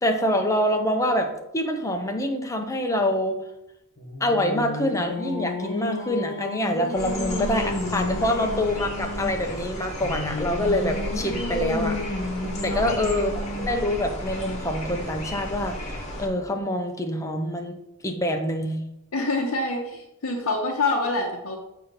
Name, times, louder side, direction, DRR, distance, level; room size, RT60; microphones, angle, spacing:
voice 1, 0.0-3.4 4.2-12.0 12.6-17.8 18.0-18.8, left 1 dB, 15° left, 4 dB, 0.6 m, -26 dB
Singing, 4.0-9.4 10.0-13.9, left 2 dB, 50° left, 1.1 m, -32 dB
sound 1, 7.0-16.3, left 1 dB, 30° left, 1.2 m, -33 dB
voice 2, 12.6-13.0 19.1-21.6, left 2 dB, 80° left, 0 dB, 0.7 m, -26 dB
7.3 x 2.8 x 5.1 m, 0.87 s
head